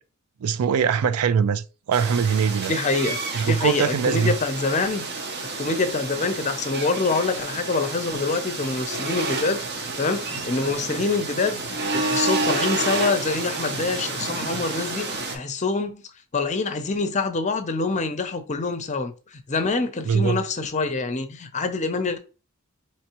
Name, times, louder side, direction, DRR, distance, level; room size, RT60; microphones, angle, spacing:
voice 1, 0.4-2.7 3.3-4.3 20.0-20.4, right 6 dB, 90° right, 0.4 m, -22 dB
sound 1, 1.9-15.4, right 3 dB, 50° right, 0.8 m, -30 dB
voice 2, 2.7-5.0 5.6-16.0 16.3-22.2, left 3 dB, 35° left, 0.5 m, -26 dB
4.4 x 3.1 x 2.9 m
head